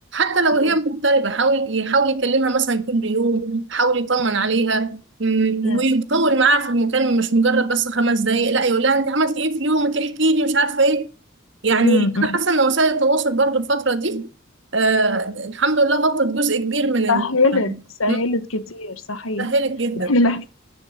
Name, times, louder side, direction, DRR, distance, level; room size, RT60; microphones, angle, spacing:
voice 1, 0.1-11.1 11.6-14.3 14.7-17.3 17.5-17.6 18.1-18.2 19.4-20.1, right 3 dB, 65° right, 1.6 m, -20 dB
voice 2, 11.8-12.4 17.1-17.7 18.0-19.5 20.1-20.4, left 2 dB, 90° left, 1.4 m, -21 dB
11.0 x 9.7 x 6.8 m
head